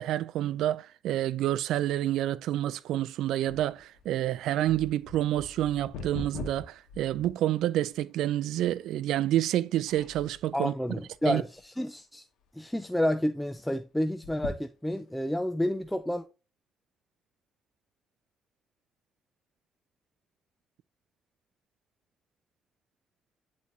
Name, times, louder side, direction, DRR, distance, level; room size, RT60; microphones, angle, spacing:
voice 1, 0.0-10.7 11.3-11.4, right 13 dB, 85° right, 0.3 m, -28 dB
sound 1, 3.5-7.9 8.5-8.6 9.3-9.6 9.9-10.5 11.1-11.8 12.1-12.2 12.5-12.6 14.1-15.2 15.8-15.9, left 4 dB, 90° left, 1.8 m, -43 dB
voice 2, 10.5-12.3 12.5-16.2, left 1 dB, 5° left, 0.4 m, -30 dB
10.5 x 4.2 x 2.7 m
cardioid pair, 90°, 0 cm